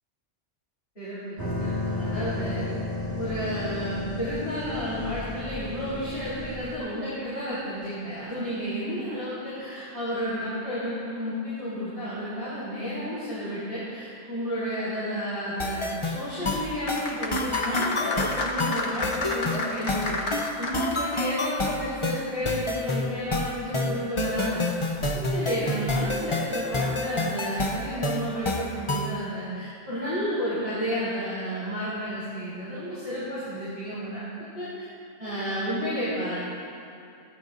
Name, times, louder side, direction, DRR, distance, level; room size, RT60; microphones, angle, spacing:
voice 1, 0.9-2.7 3.2-20.2 20.5-24.7 25.1-34.3 34.5-34.7 35.2-36.4, equal, 65° left, -12 dB, 5.0 m, -31 dB
sound 1, 1.4-6.8, left 2 dB, 15° left, 2.0 m, -33 dB
sound 2, 15.6-29.2, left 2 dB, 30° left, 0.8 m, -29 dB
sound 3, 16.8-21.3 21.6-21.7, left 2 dB, 90° left, 1.8 m, -30 dB
23.5 x 16.5 x 2.6 m, 2.6 s
omnidirectional pair, 1.1 m